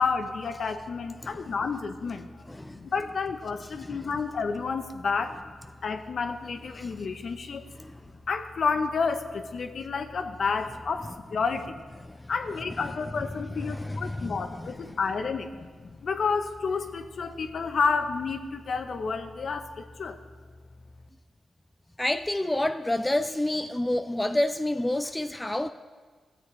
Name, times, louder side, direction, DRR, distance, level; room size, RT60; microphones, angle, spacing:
voice 1, 0.0-2.3 2.7-5.4 5.8-7.6 8.3-11.8 12.3-20.2, left 5 dB, 65° left, 7 dB, 0.8 m, -30 dB
voice 2, 1.2-1.5 2.5-2.8 3.7-4.1 6.8-6.9 7.8-8.0 12.1-12.3 13.6-14.9 22.0-25.7, left 1 dB, 10° left, 9 dB, 0.3 m, -29 dB
16.0 x 7.9 x 3.3 m, 1.4 s
cardioid pair, 90°, 0 cm